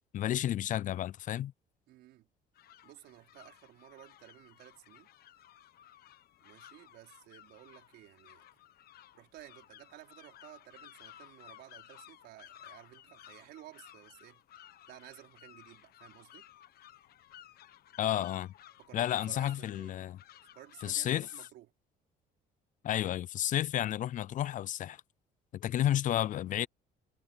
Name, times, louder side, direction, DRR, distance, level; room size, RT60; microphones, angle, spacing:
voice 1, 0.1-1.5 18.0-18.5 18.9-20.2 20.8-21.3 22.8-25.0 25.5-26.7, left 12 dB, 50° left, 0.4 m, -31 dB
voice 2, 1.9-2.3 2.8-5.1 6.4-8.4 9.1-14.4 14.9-16.5 18.8-20.1 20.5-21.7 25.6-26.0, right 15 dB, 80° right, 4.6 m, -55 dB
sound 1, 2.5-21.5, left 12 dB, 65° left, 1.3 m, -57 dB
cardioid pair, 110°, 17 cm